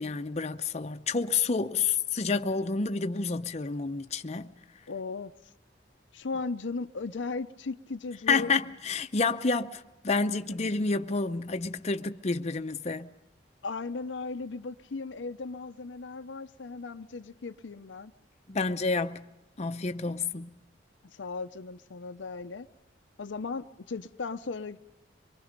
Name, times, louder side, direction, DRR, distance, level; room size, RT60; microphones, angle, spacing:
voice 1, 0.0-4.5 8.3-13.1 18.5-19.2 19.6-20.5, left 4 dB, 40° left, 0.7 m, -29 dB
voice 2, 4.9-5.3 6.1-8.6 13.6-18.1 21.1-22.7 23.2-24.8, left 4 dB, 90° left, 0.7 m, -37 dB
24.0 x 23.5 x 5.2 m
head